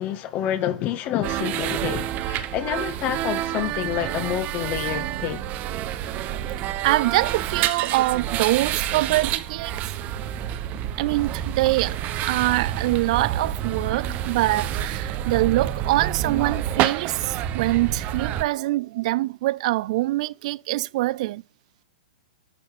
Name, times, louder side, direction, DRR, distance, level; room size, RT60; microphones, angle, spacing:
voice 1, 0.0-5.4, left 11 dB, 35° left, 1.9 m, -28 dB
sound 1, 1.2-18.4, right 11 dB, 35° right, 1.2 m, -28 dB
voice 2, 6.8-9.8 11.0-12.0 12.2-21.4, right 18 dB, 50° right, 0.5 m, -24 dB
12.0 x 8.1 x 6.7 m
figure-of-eight pair, 110°, 5 cm